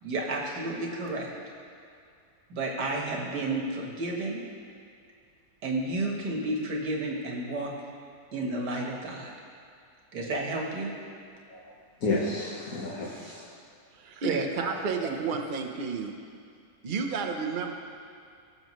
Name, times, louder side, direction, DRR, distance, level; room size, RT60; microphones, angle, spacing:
voice 1, 0.0-1.3 2.5-4.4 5.6-7.7 8.3-9.3 10.1-10.9 14.3-15.2, right 2 dB, 80° right, 0 dB, 1.9 m, -31 dB
voice 2, 11.5-13.5, left 2 dB, 55° left, -4 dB, 1.5 m, -32 dB
voice 3, 14.0-16.1 16.8-17.7, right 5 dB, 45° right, 3 dB, 0.7 m, -31 dB
19.0 x 6.7 x 3.1 m, 2.3 s
omnidirectional pair, 1.8 m